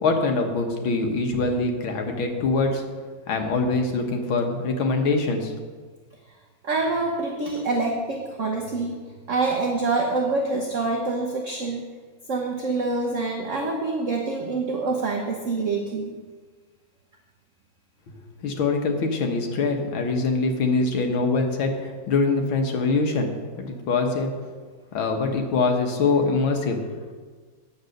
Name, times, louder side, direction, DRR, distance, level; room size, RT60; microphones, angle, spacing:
voice 1, 0.0-2.8 3.3-5.6 18.4-24.3 24.9-27.0, left 3 dB, 90° left, 3 dB, 2.1 m, -24 dB
voice 2, 6.6-8.9 9.3-11.8 12.3-16.2, right 3 dB, 45° right, 1 dB, 1.2 m, -26 dB
9.7 x 8.2 x 6.5 m, 1.5 s
omnidirectional pair, 2.1 m